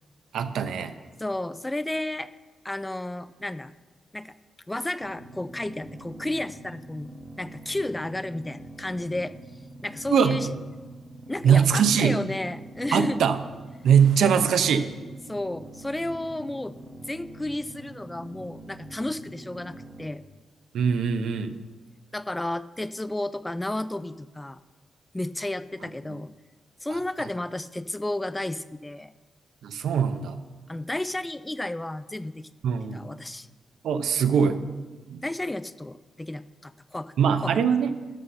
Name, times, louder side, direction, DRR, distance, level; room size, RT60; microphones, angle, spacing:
voice 1, 0.3-0.9 10.1-10.4 11.4-12.2 12.9-13.4 13.8-14.9 20.7-21.6 29.6-30.4 32.6-33.1 33.8-34.6 35.1-35.2 37.2-37.9, right 7 dB, 85° right, 10 dB, 0.6 m, -22 dB
voice 2, 1.2-2.3 2.6-3.7 4.1-4.4 4.7-7.1 7.4-9.3 9.8-10.5 11.3-13.2 15.3-20.2 22.1-24.6 25.1-26.3 26.8-29.1 30.7-32.5 32.9-33.5 35.2-37.1 37.4-37.6, left 1 dB, 10° left, 15 dB, 0.3 m, -32 dB
sound 1, 5.0-20.1, right 1 dB, 25° right, 1.0 m, -45 dB
11.5 x 5.6 x 6.5 m, 1.3 s
cardioid pair, 110°, 0 cm